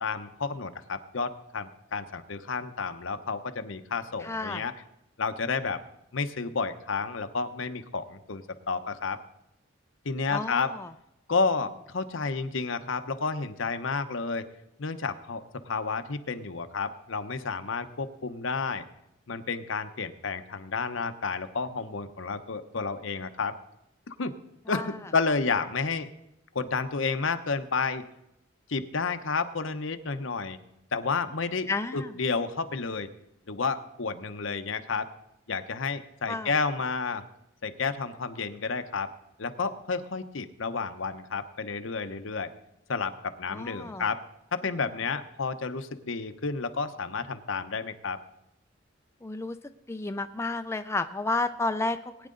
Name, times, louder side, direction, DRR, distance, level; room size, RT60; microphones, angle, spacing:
voice 1, 0.0-4.7 5.2-5.8 6.1-9.2 10.0-10.7 11.3-14.5 14.8-18.8 19.3-23.6 24.1-24.4 24.7-26.1 26.5-28.0 28.7-30.6 30.9-33.1 33.5-35.1 35.5-37.2 37.6-39.1 39.4-42.5 42.9-44.2 44.5-48.2, left 4 dB, 75° left, 9 dB, 0.9 m, -31 dB
voice 2, 4.2-4.7 10.3-10.9 24.7-25.0 31.7-32.1 36.3-36.5 43.5-44.1 49.2-49.6 49.9-52.3, left 3 dB, 15° left, 7 dB, 0.5 m, -31 dB
19.5 x 9.6 x 3.9 m, 0.82 s
head